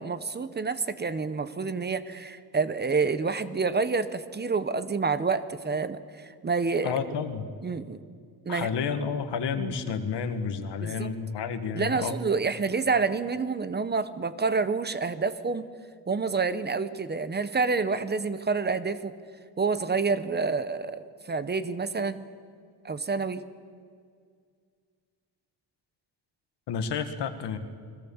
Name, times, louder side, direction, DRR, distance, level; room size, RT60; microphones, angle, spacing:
voice 1, 0.0-6.9 7.6-8.0 8.5-8.7 9.6-9.7 10.8-11.1 11.7-15.7 16.1-19.1 19.6-22.2 22.8-23.4, right 4 dB, 25° right, 13 dB, 0.8 m, -28 dB
voice 2, 6.8-7.5 8.5-12.2 26.7-27.6, left 6 dB, 85° left, 9 dB, 1.9 m, -30 dB
29.5 x 22.0 x 7.2 m, 2.1 s
wide cardioid pair, 175°, 40 cm